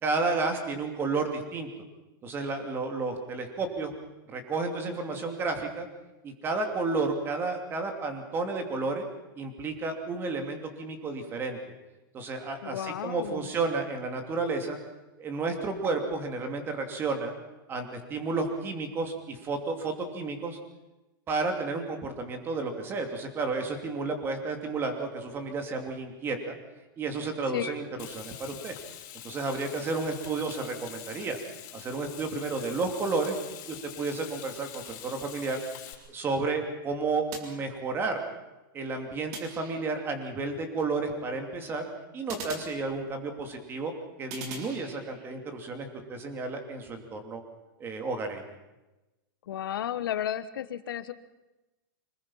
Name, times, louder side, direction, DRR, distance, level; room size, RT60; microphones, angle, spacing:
voice 1, 0.0-1.7 2.2-3.9 4.3-5.9 6.2-9.0 9.4-11.6 12.1-14.8 15.2-17.3 17.7-20.6 21.3-26.6 27.0-28.7 29.2-31.4 31.7-33.4 33.7-35.6 36.1-38.2 38.7-41.9 42.1-43.9 44.2-47.4 47.8-48.4, right 3 dB, 20° right, 5 dB, 2.9 m, -32 dB
voice 2, 12.6-13.5 27.5-27.7 49.5-51.1, left 11 dB, 75° left, 12 dB, 1.4 m, -33 dB
Frying (food), 28.0-35.9, left 12 dB, 45° left, 6.1 m, -45 dB
sound 1, 37.3-38.2 39.3-40.2 42.3-43.4 44.3-45.4, right 4 dB, 45° right, 3.9 m, -43 dB
26.0 x 20.5 x 5.7 m, 1.0 s
supercardioid pair, 155°, 12 cm